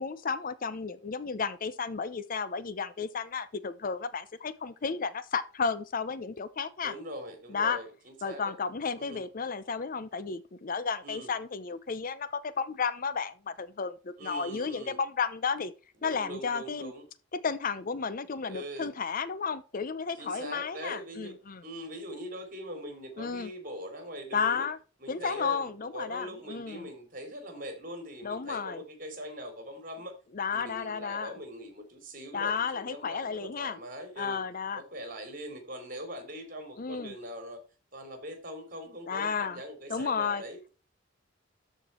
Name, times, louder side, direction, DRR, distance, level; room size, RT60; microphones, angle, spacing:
voice 1, 0.0-6.9 7.5-7.8 8.2-15.7 16.0-16.9 17.4-21.6 23.2-23.5 24.3-24.8 25.1-26.9 28.2-28.8 30.3-31.3 32.3-33.8 34.2-34.8 36.8-37.1 39.1-39.6 39.9-40.4, left 5 dB, 45° left, 0.6 m, -33 dB
voice 2, 6.8-8.5 9.0-9.2 11.0-11.3 14.2-15.0 16.0-17.0 18.5-18.9 20.2-24.7 25.0-30.2 30.5-34.4 34.7-37.6 37.9-40.7, equal, 45° right, 3.2 m, -42 dB
13.0 x 4.6 x 4.4 m
head